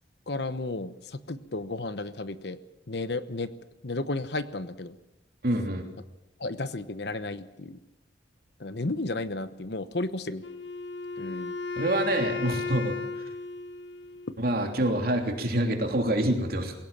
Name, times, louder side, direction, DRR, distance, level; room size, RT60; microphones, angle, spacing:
voice 1, 0.3-2.6 2.9-3.5 3.8-4.9 6.4-7.8 8.6-10.4 11.2-11.5, left 2 dB, 60° left, 12 dB, 1.1 m, -33 dB
voice 2, 5.4-5.9 11.8-13.2 14.4-16.7, right 1 dB, 55° right, 3 dB, 3.2 m, -26 dB
Wind instrument woodwind instrument, 10.4-14.5, left 4 dB, 75° left, 1.2 m, -35 dB
21.0 x 17.5 x 7.4 m, 0.97 s
head